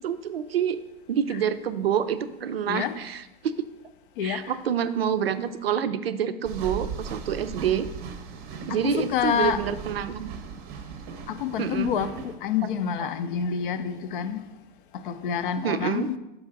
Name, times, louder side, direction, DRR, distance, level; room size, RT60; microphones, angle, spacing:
voice 1, 0.0-0.8 1.1-3.7 4.2-7.9 8.7-10.4 11.6-11.9 15.6-16.1, right 8 dB, 85° right, 0.5 m, -27 dB
voice 2, 4.2-4.5 8.7-9.6 11.3-14.4 14.9-16.2, left 8 dB, 65° left, 0.5 m, -28 dB
sound 1, 6.4-12.4, right 6 dB, 35° right, 0.6 m, -38 dB
5.3 x 4.8 x 3.7 m
hypercardioid pair, 105°, 29 cm